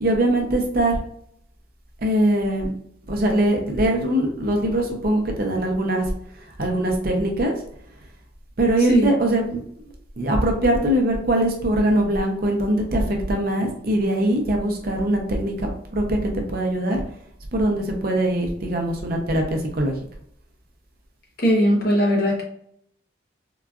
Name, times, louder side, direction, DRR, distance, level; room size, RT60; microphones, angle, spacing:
voice 1, 0.0-1.0 2.0-2.7 3.1-6.0 6.6-7.5 8.6-9.6 10.2-17.0 17.5-19.9, right 1 dB, 45° right, 2 dB, 0.6 m, -22 dB
voice 2, 21.4-22.4, equal, 50° left, -1 dB, 0.8 m, -19 dB
3.8 x 2.3 x 2.3 m, 0.67 s
head